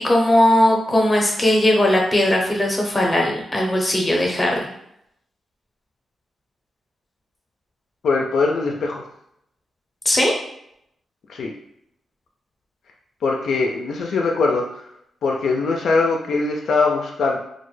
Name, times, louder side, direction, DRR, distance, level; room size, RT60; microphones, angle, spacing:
voice 1, 0.0-4.7 10.0-10.3, left 1 dB, 20° left, -1 dB, 0.6 m, -18 dB
voice 2, 8.0-9.0 11.3-11.5 13.2-14.8 15.2-17.4, left 3 dB, 70° left, 1 dB, 0.3 m, -21 dB
2.1 x 2.1 x 3.1 m, 0.75 s
cardioid pair, 105°, 0 cm